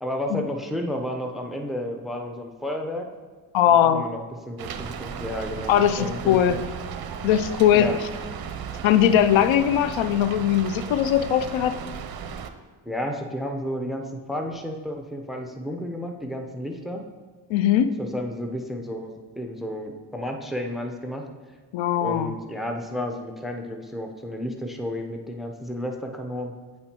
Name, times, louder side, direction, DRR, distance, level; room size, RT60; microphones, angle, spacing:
voice 1, 0.0-3.1 3.7-4.2 4.5-6.6 7.7-7.9 12.9-17.0 18.0-21.2 22.0-26.5, left 1 dB, ahead, 3 dB, 0.7 m, -32 dB
voice 2, 3.5-4.1 5.7-6.6 7.2-7.9 8.8-11.8 17.5-17.9 21.7-22.3, left 10 dB, 80° left, 12 dB, 0.5 m, -20 dB
Rain, 4.6-12.5, right 7 dB, 55° right, 0.6 m, -35 dB
8.9 x 4.3 x 2.9 m, 1.4 s
cardioid pair, 70°, 46 cm